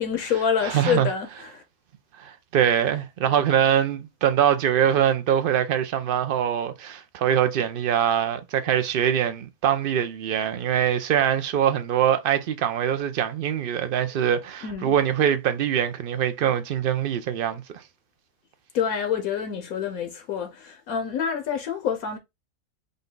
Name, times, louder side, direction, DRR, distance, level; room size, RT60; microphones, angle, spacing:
voice 1, 0.0-1.6 3.2-3.3 14.6-14.9 18.7-22.2, left 7 dB, 80° left, 1.3 m, -27 dB
voice 2, 0.6-1.1 2.2-17.6, right 9 dB, 65° right, 0.5 m, -23 dB
5.2 x 2.3 x 3.8 m
omnidirectional pair, 1.5 m